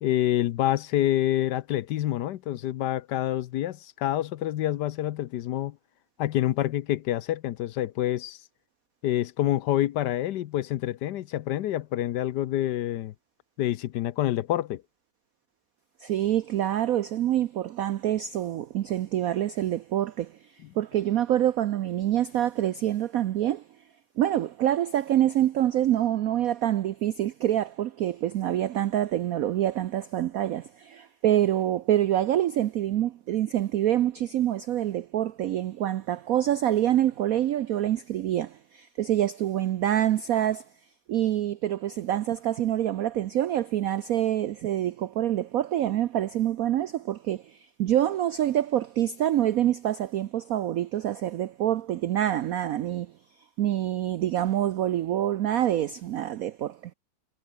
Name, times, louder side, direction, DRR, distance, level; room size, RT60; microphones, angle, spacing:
voice 1, 0.0-5.8 6.2-8.4 9.0-13.1 13.6-14.8, left 13 dB, 65° left, 1.2 m, -27 dB
voice 2, 16.0-20.4 20.8-23.6 24.2-40.6 41.1-53.1 53.6-56.8, right 12 dB, 90° right, 0.7 m, -26 dB
omnidirectional pair, 2.2 m